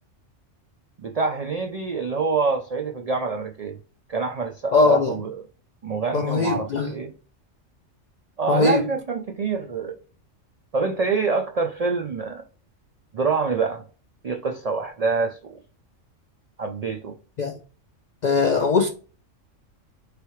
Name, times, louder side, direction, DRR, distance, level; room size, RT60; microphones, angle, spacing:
voice 1, 1.0-3.8 4.1-5.4 5.8-7.1 8.4-10.0 10.7-12.4 13.1-13.8 14.2-15.6 16.6-17.2, right 4 dB, 85° right, 0.3 m, -26 dB
voice 2, 4.7-5.1 6.1-6.9 8.5-8.9 17.4-17.5 18.2-18.9, left 4 dB, 75° left, 0.4 m, -20 dB
4.5 x 3.4 x 3.1 m
omnidirectional pair, 1.3 m